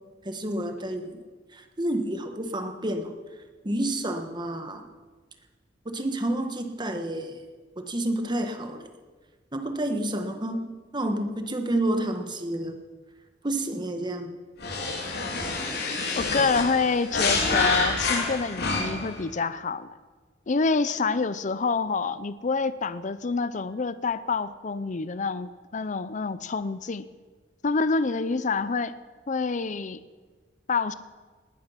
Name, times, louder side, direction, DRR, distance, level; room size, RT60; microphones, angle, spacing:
voice 1, 0.2-1.2 1.5-3.1 3.6-4.8 5.8-7.4 7.8-8.9 9.5-10.6 10.9-12.8 13.4-14.3, right 1 dB, 25° right, 6 dB, 1.4 m, -29 dB
sound 1, 14.6-19.2, left 3 dB, 60° left, 3.0 m, -27 dB
voice 2, 15.8-20.0 20.5-27.0 27.6-28.9 29.3-30.0 30.7-30.9, left 4 dB, 40° left, 14 dB, 0.6 m, -27 dB
19.5 x 11.5 x 5.8 m, 1.4 s
head